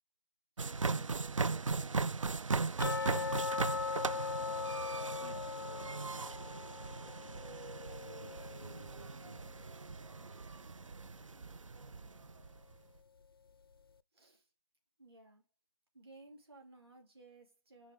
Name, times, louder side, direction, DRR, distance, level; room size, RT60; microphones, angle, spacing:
sound 1, 0.6-12.6, right 4 dB, 70° right, 0.4 m, -38 dB
sound 2, 2.8-9.7 9.9-10.0 10.5-10.6 11.2-11.3, left 5 dB, 45° left, 0.4 m, -40 dB
voice 1, 5.0-6.3 6.9-9.5, equal, 10° right, 0.5 m, -59 dB
voice 2, 14.1-14.5 15.0-15.4 15.9-17.9, right 2 dB, 50° right, 2.5 m, -58 dB
10.5 x 3.6 x 3.5 m
figure-of-eight pair, 160°, 17 cm